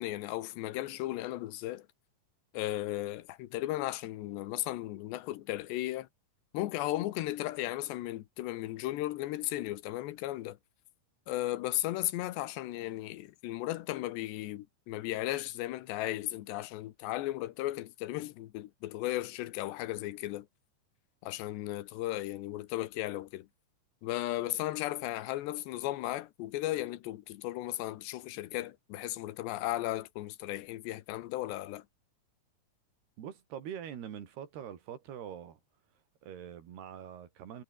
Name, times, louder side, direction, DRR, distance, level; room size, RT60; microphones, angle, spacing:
voice 1, 0.0-1.9 2.5-6.1 6.5-10.6 11.3-20.5 21.2-23.5 24.0-31.8, left 16 dB, 90° left, 3.3 m, -35 dB
voice 2, 33.2-35.6 36.2-37.6, right 9 dB, 70° right, 4.6 m, -44 dB
omnidirectional pair, 4.9 m